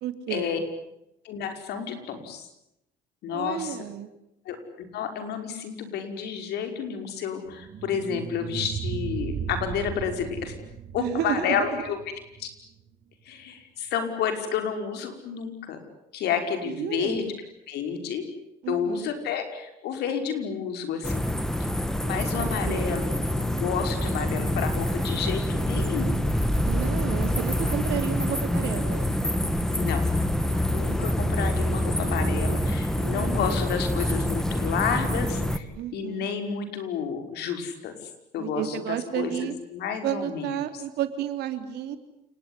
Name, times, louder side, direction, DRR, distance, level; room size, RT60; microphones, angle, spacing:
voice 1, 0.0-0.6 3.3-4.1 11.0-11.9 16.6-17.3 18.6-19.1 22.4-23.2 26.6-29.1 32.9-33.4 35.7-36.3 38.4-39.5 40.0-42.0, right 11 dB, 80° right, 9 dB, 3.3 m, -32 dB
voice 2, 1.2-2.5 3.2-3.8 4.5-10.5 10.9-12.0 12.4-12.5 13.3-15.8 16.1-17.2 17.7-18.2 18.7-21.3 22.0-26.2 29.7-30.1 30.4-40.6, left 7 dB, 75° left, 7 dB, 5.5 m, -30 dB
sound 1, 7.5-12.6, right 7 dB, 55° right, 3.4 m, -36 dB
sound 2, 21.0-35.6, equal, 5° left, 1.9 m, -26 dB
29.5 x 20.5 x 9.8 m, 0.85 s
cardioid pair, 110°, 17 cm